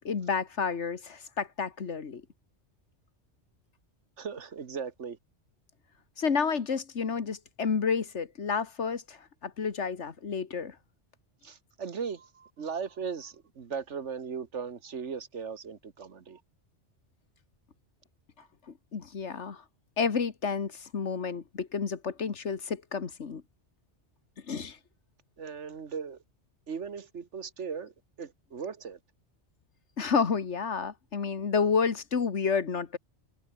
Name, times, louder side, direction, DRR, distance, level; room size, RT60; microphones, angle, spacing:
voice 1, 0.0-2.2 6.2-10.8 18.9-19.6 20.0-23.4 24.5-24.8 30.0-33.0, left 5 dB, 80° left, 1.9 m, -30 dB
voice 2, 4.2-5.2 11.4-16.4 25.4-26.2 26.7-29.0, right 6 dB, 85° right, 1.8 m, -38 dB
omnidirectional pair, 1.2 m